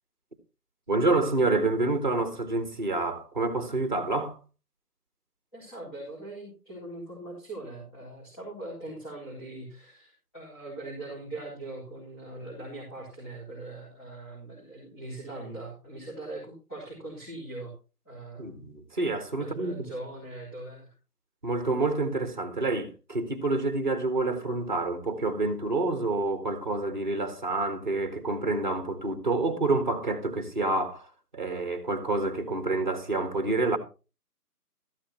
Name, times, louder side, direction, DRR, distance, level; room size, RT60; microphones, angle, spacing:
voice 1, 0.9-4.4 18.4-19.9 21.4-31.1 31.3-33.8, right 2 dB, 30° right, 1.6 m, -28 dB
voice 2, 5.5-17.7 18.0-18.7 19.4-20.9, right 2 dB, 15° left, 4.0 m, -41 dB
13.5 x 11.5 x 2.9 m
figure-of-eight pair, 175°, 48 cm